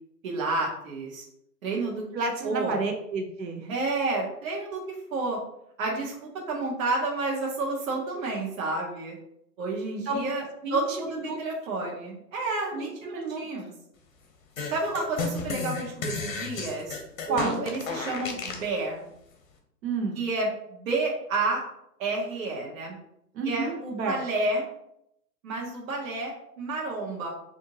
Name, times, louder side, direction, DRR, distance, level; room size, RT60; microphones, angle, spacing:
voice 1, 0.2-1.2 1.6-2.0 2.4-2.8 3.7-5.4 5.8-9.2 9.6-10.4 10.7-13.7 14.7-17.0 17.3-19.0 20.2-21.6 22.0-23.0 23.4-24.6 25.4-27.3, right 3 dB, 55° right, -2 dB, 0.9 m, -30 dB
voice 2, 2.1-3.7 10.1-11.4 12.7-13.5 17.2-17.6 19.8-20.2 23.3-24.2, right 3 dB, 80° right, 2 dB, 1.0 m, -31 dB
sound 1, 14.6-18.7, left 4 dB, 55° left, 0.9 m, -33 dB
3.6 x 2.6 x 2.8 m, 0.77 s
hypercardioid pair, 145°, 50 cm